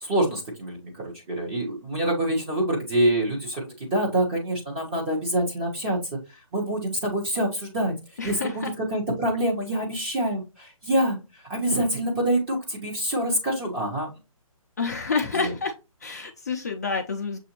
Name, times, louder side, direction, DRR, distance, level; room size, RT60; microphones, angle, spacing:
voice 1, 0.0-6.0 6.5-7.9 8.2-11.2 11.5-14.1 15.3-15.5, right 1 dB, 20° right, -2 dB, 0.8 m, -26 dB
voice 2, 8.2-8.7 14.8-15.7 16.0-17.4, left 4 dB, 30° left, 3 dB, 0.4 m, -28 dB
6.6 x 2.5 x 2.8 m, 0.28 s
hypercardioid pair, 165°, 19 cm